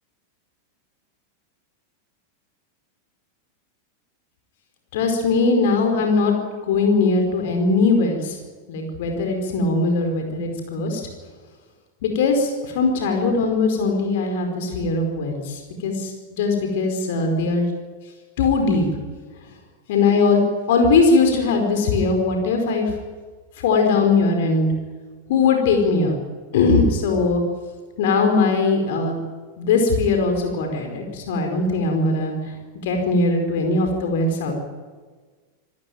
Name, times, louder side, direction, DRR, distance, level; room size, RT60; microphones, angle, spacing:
voice 1, 4.9-6.4 6.7-8.4 8.7-11.0 12.0-17.7 18.4-18.8 19.9-20.4 20.7-22.9 23.6-24.7 25.3-26.1 26.5-27.4 28.0-29.2 29.6-32.5 32.8-34.5, left 3 dB, 55° left, 3 dB, 4.7 m, -20 dB
25.5 x 15.0 x 9.4 m, 1.4 s
figure-of-eight pair, 90°, 0 cm